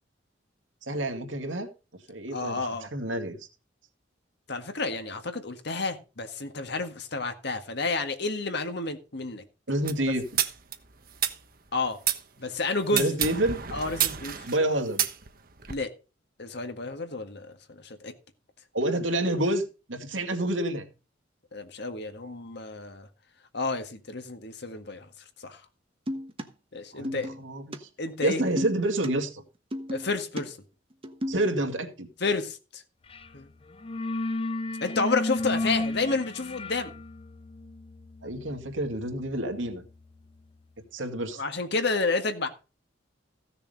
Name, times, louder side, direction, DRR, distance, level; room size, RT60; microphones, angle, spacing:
voice 1, 0.8-1.7 2.1-3.4 9.7-10.4 12.9-13.6 14.5-15.0 18.7-20.9 26.9-27.9 28.2-29.4 31.3-32.1 38.2-39.8 40.9-41.4, right 1 dB, 80° right, 2.3 m, -28 dB
voice 2, 2.3-2.9 4.5-9.4 11.7-12.0 12.4-13.2 13.7-14.4 15.7-15.9 16.4-18.1 21.5-23.1 23.5-25.1 25.4-25.6 26.7-27.3 28.0-28.4 29.9-30.6 32.2-32.8 33.3-33.5 34.8-36.9 41.4-42.5, left 3 dB, 60° left, 1.7 m, -30 dB
sound 1, 9.8-12.2 12.9-15.7, right 10 dB, 50° right, 1.2 m, -30 dB
sound 2, 26.1-26.5 27.0-27.4 27.7-27.8 28.4-29.1 29.7-30.4 30.9-31.5, equal, 30° right, 1.2 m, -33 dB
sound 3, 33.1-33.3 33.6-40.3, left 2 dB, 30° left, 0.6 m, -34 dB
15.5 x 6.9 x 5.2 m
head